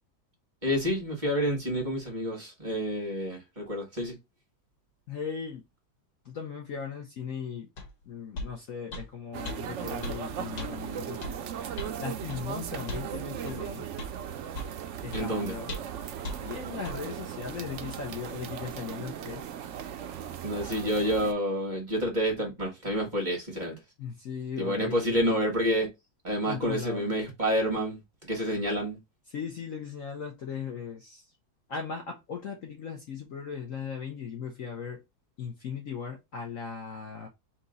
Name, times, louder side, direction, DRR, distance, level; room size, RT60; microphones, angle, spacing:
voice 1, 0.6-4.1 15.1-15.5 20.4-23.8 24.6-25.9 26.2-29.0, equal, 25° right, 1.6 m, -29 dB
voice 2, 5.1-5.6 6.2-7.7 8.1-11.4 12.0-13.9 15.0-15.7 16.4-19.4 20.8-21.0 24.0-25.3 26.5-27.1 29.3-31.3 31.7-35.0 35.4-37.3, left 6 dB, 55° left, 1.1 m, -38 dB
sound 1, 7.8-7.9 8.4-8.5 8.9-9.1 9.5-9.6 10.0-10.2 10.6-10.7 11.2-11.4 11.8-12.0 12.3-12.4 12.9-13.1 13.5-13.6 14.0-14.1 14.5-14.8 15.1-15.3 15.7-16.0 16.2-16.4 16.9-17.0, left 1 dB, 85° left, 2.0 m, -37 dB
sound 2, 9.3-21.3, right 9 dB, 75° right, 0.6 m, -38 dB
3.9 x 2.9 x 3.8 m
omnidirectional pair, 1.9 m